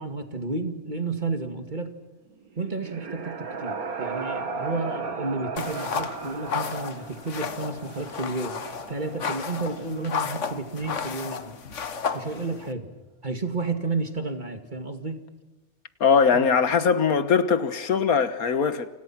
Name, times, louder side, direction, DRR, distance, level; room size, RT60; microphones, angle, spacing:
voice 1, 0.0-1.9 2.6-11.5 12.1-12.9 13.2-15.2 16.3-16.5, right 3 dB, 30° right, 2.3 m, -31 dB
sound 1, 2.4-10.2, right 4 dB, 80° right, 2.3 m, -36 dB
sound 2, 5.6-12.7, left 6 dB, 55° left, 1.6 m, -33 dB
voice 2, 16.0-18.9, left 6 dB, 80° left, 1.8 m, -21 dB
29.0 x 26.5 x 6.0 m
omnidirectional pair, 1.5 m